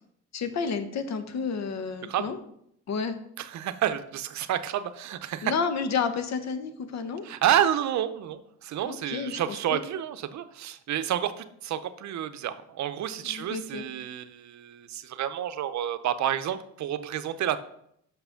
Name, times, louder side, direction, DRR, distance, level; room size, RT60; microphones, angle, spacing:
voice 1, 0.3-2.4 2.9-3.2 5.4-7.2 8.8-9.8 13.2-13.9, left 5 dB, 60° left, 9 dB, 1.0 m, -31 dB
voice 2, 2.0-2.3 3.4-5.5 7.2-17.6, right 11 dB, 65° right, 12 dB, 0.7 m, -29 dB
6.0 x 5.8 x 5.7 m, 0.72 s
cardioid pair, 90°, 30 cm